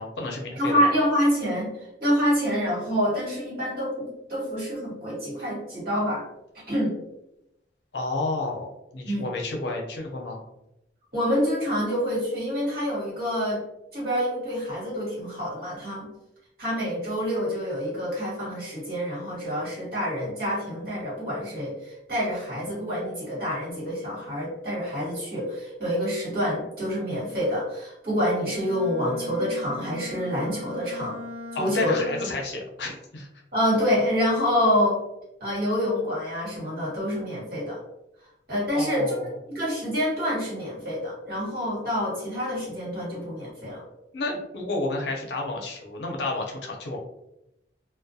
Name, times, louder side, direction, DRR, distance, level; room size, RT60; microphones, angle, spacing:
voice 1, 0.0-0.8 7.9-10.4 31.5-33.3 38.7-39.3 44.1-47.0, left 2 dB, 75° left, 0 dB, 0.6 m, -31 dB
voice 2, 0.5-1.7 2.0-6.2 6.7-6.9 9.0-9.3 11.1-13.6 13.9-16.1 16.6-31.2 31.5-32.0 33.5-35.0 35.4-37.8 38.5-39.1 39.5-43.8, equal, 50° right, -7 dB, 1.3 m, -27 dB
Bowed string instrument, 28.5-32.6, left 2 dB, 85° right, 0.7 m, -40 dB
2.3 x 2.1 x 2.6 m, 0.86 s
head